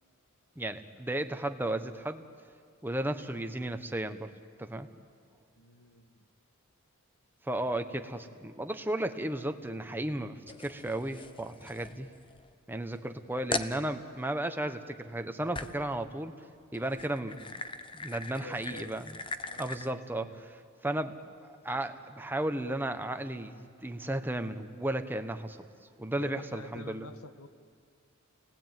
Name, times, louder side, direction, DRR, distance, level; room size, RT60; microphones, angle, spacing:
voice 1, 0.6-2.2 2.8-4.3 4.6-4.9 7.4-12.1 12.7-16.3 16.7-17.4 17.9-19.2 19.6-20.3 20.8-21.2 21.6-25.6 26.0-27.1, right 1 dB, 10° right, 7 dB, 1.2 m, -34 dB
voice 2, 5.6-6.2 7.8-7.9 18.2-18.9 19.5-20.3 26.2-27.5, left 3 dB, 80° left, 8 dB, 1.7 m, -48 dB
sound 1, 10.5-12.5 12.9-13.0 13.5-13.8 15.5-15.9 16.7-19.9, left 3 dB, 25° left, 0.9 m, -40 dB
29.5 x 19.5 x 9.2 m, 2.2 s
head